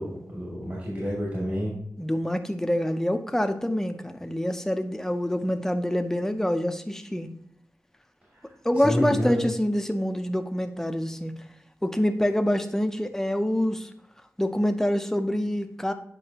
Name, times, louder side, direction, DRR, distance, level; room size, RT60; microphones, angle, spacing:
voice 1, 0.0-1.7 8.3-9.4, equal, 40° right, -5 dB, 2.5 m, -30 dB
voice 2, 2.0-7.3 8.6-11.3 11.8-13.9 14.4-15.9, equal, 5° left, 7 dB, 0.6 m, -26 dB
8.3 x 5.3 x 2.9 m, 0.70 s
wide cardioid pair, 95°, 6 cm